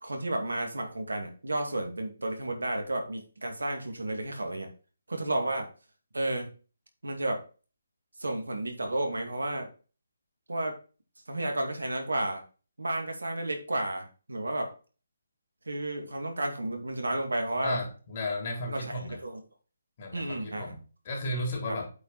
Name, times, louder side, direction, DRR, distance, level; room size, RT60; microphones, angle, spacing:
voice 1, 0.0-4.7 5.1-5.7 6.1-6.5 7.0-7.4 8.2-9.7 10.5-10.8 11.3-12.4 12.8-14.7 15.7-17.8 18.7-19.4 20.1-20.7 21.7-21.8, right 1 dB, 85° right, 4 dB, 2.5 m, -32 dB
voice 2, 17.6-19.2 20.0-21.9, left 1 dB, 40° left, 0 dB, 3.7 m, -34 dB
8.3 x 5.0 x 4.2 m, 0.35 s
figure-of-eight pair, 145°, 0 cm